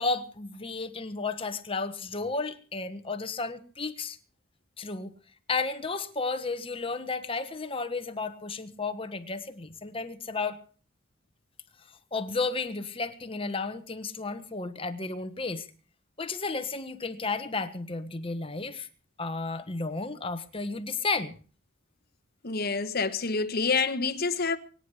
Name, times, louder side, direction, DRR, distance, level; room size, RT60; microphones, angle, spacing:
voice 1, 0.0-4.2 4.8-5.1 5.5-10.6 12.1-15.7 16.2-18.9 19.2-21.4, left 3 dB, 25° left, 1.4 m, -33 dB
voice 2, 22.4-24.6, left 4 dB, 45° left, 1.3 m, -27 dB
24.0 x 10.0 x 4.9 m
head